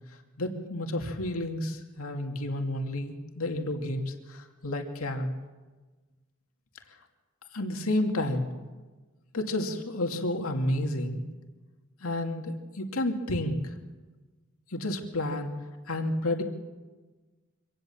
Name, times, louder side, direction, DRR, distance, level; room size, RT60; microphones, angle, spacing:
voice 1, 0.4-5.3 7.5-8.5 9.3-11.2 12.0-13.7 14.7-15.5 15.9-16.4, left 1 dB, 90° left, 3 dB, 2.4 m, -30 dB
25.5 x 18.0 x 7.2 m, 1.3 s
head